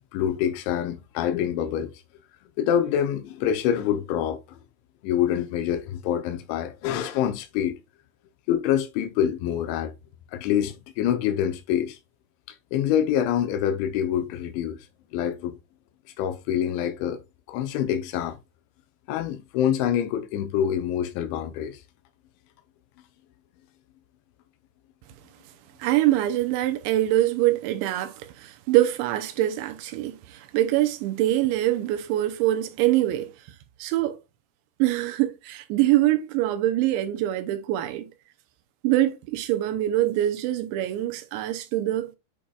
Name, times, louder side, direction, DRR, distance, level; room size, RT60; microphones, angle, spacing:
voice 1, 0.0-1.9 2.6-4.6 5.0-7.8 8.5-9.9 10.3-12.0 12.7-14.8 15.1-15.6 16.2-17.2 17.5-18.4 19.1-21.8, left 10 dB, 85° left, 3.1 m, -26 dB
voice 2, 25.8-33.3 33.8-34.2 34.8-38.1 38.8-42.1, right 14 dB, 80° right, 2.9 m, -24 dB
8.5 x 5.1 x 2.4 m
omnidirectional pair, 5.4 m